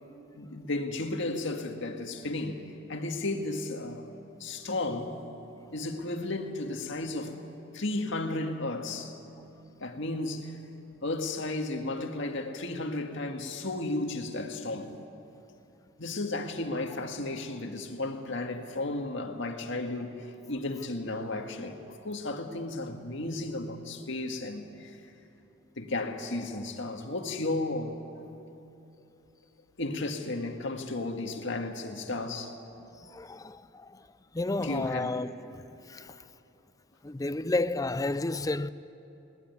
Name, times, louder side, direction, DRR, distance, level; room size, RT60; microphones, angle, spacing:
voice 1, 0.3-2.6 2.9-4.1 4.4-5.2 5.7-7.5 7.7-9.2 9.8-10.6 11.0-15.0 16.0-20.2 20.5-25.0 25.8-28.3 29.8-32.5 34.6-35.2 36.1-36.2, left 2 dB, 65° left, 1.9 m, -34 dB
voice 2, 33.1-33.9 34.3-35.3 35.5-35.6 35.9-36.1 37.0-38.7, left 2 dB, 15° left, 0.5 m, -31 dB
21.0 x 19.0 x 9.7 m
head